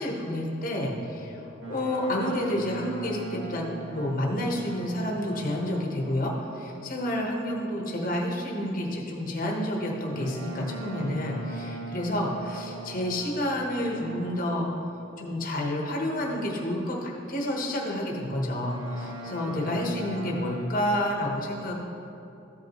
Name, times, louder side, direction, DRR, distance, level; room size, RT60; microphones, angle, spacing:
voice 1, 0.0-1.4 1.7-3.6 3.9-14.8 15.2-21.7, left 1 dB, 45° left, -1 dB, 1.0 m, -29 dB
Boat Water vehicle, 1.6-6.1 10.1-14.6 18.6-20.6, right 1 dB, 75° right, 1.5 m, -40 dB
14.0 x 5.4 x 3.0 m, 2.8 s
head